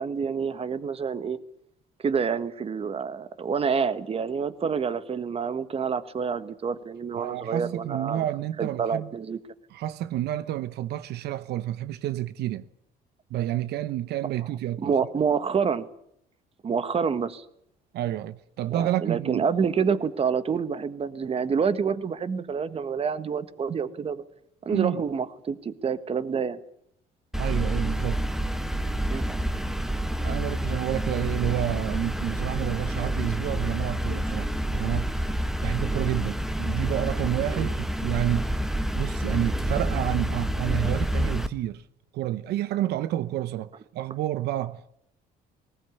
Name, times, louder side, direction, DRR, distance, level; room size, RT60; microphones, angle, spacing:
voice 1, 0.0-1.4 2.0-8.2 8.6-9.4 14.8-15.9 16.6-17.4 18.7-24.2 24.6-26.6 29.1-29.3 37.5-37.7, right 6 dB, 35° right, 1.5 m, -27 dB
voice 2, 7.1-9.1 9.7-12.7 13.3-14.9 17.9-19.4 24.7-25.0 27.4-28.2 30.2-35.2 35.6-38.6 38.9-41.8 42.1-45.0, right 13 dB, 75° right, 0.9 m, -29 dB
sound 1, 27.3-41.5, right 1 dB, ahead, 1.3 m, -28 dB
19.0 x 19.0 x 9.5 m
cardioid pair, 110°, 17 cm